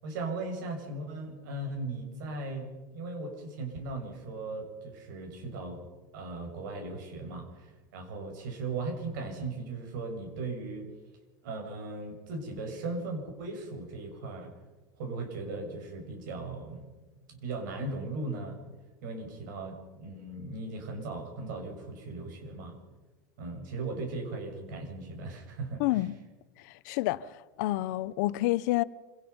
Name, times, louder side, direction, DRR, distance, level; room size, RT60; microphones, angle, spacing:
voice 1, 0.0-5.8 6.1-10.9 11.4-14.5 15.0-16.9 17.3-18.6 19.0-22.8 23.4-26.0, right 3 dB, 75° right, 6.5 m, -38 dB
voice 2, 25.8-26.1 26.6-28.8, left 17 dB, 65° left, 0.8 m, -29 dB
26.0 x 18.0 x 5.6 m
supercardioid pair, 130°, 10 cm